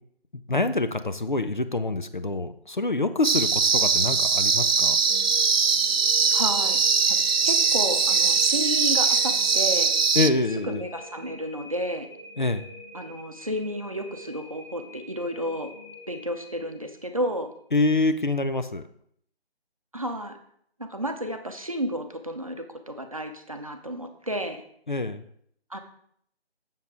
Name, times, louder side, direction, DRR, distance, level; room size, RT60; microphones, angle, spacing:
voice 1, 0.5-5.0 10.1-10.8 12.4-12.6 17.7-18.8 24.9-25.2, left 2 dB, 50° left, 10 dB, 0.6 m, -26 dB
sound 1, 3.2-10.3, right 5 dB, 70° right, 0.5 m, -21 dB
sound 2, 5.0-17.2, left 1 dB, 10° left, 1.4 m, -44 dB
voice 2, 6.3-6.8 7.1-9.9 10.7-12.1 12.9-15.7 16.1-17.5 19.9-20.4 20.8-24.6 25.7-25.8, equal, 35° right, 6 dB, 0.7 m, -32 dB
7.2 x 7.1 x 3.8 m, 0.67 s
figure-of-eight pair, 160°, 32 cm